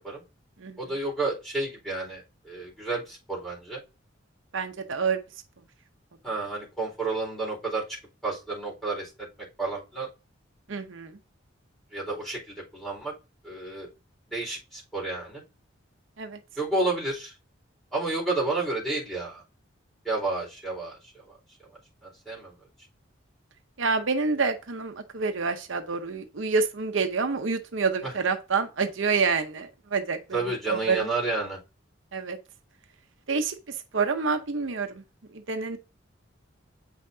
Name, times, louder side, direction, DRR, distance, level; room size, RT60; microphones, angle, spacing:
voice 1, 0.8-3.8 6.2-7.8 8.2-9.1 9.6-10.1 11.9-12.4 12.7-13.1 13.4-13.9 14.3-15.4 16.6-17.3 17.9-19.4 20.0-21.0 22.0-22.5 28.0-28.1 30.3-31.6, right 3 dB, ahead, 4.3 m, -30 dB
voice 2, 4.5-5.2 10.7-11.2 16.2-16.4 23.8-30.2 30.7-31.1 32.1-32.4 33.3-35.0 35.3-35.8, right 4 dB, 80° right, 0.8 m, -27 dB
8.5 x 5.8 x 2.7 m
head